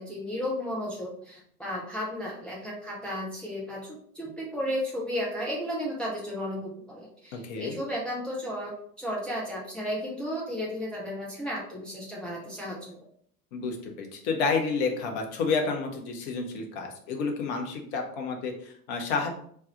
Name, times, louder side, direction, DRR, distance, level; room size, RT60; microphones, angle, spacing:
voice 1, 0.0-12.9, equal, ahead, -5 dB, 0.3 m, -34 dB
voice 2, 7.3-7.8 13.5-19.3, left 4 dB, 45° left, 3 dB, 1.0 m, -30 dB
3.3 x 2.3 x 3.9 m, 0.62 s
figure-of-eight pair, 80°, 46 cm